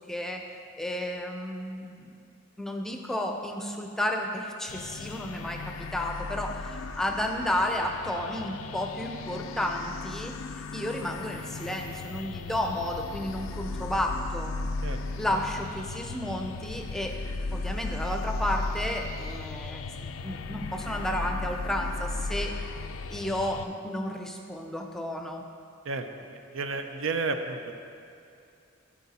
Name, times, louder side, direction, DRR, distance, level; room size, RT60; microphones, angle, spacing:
voice 1, 0.1-0.4 0.8-2.1 2.6-10.4 10.7-14.5 15.2-17.2 17.5-22.5 23.1-25.4, left 1 dB, ahead, 3 dB, 0.5 m, -32 dB
sound 1, 4.7-23.7, left 3 dB, 90° left, 0.4 m, -36 dB
voice 2, 25.9-27.7, right 3 dB, 80° right, 7 dB, 0.6 m, -32 dB
13.0 x 4.7 x 4.2 m, 2.5 s
head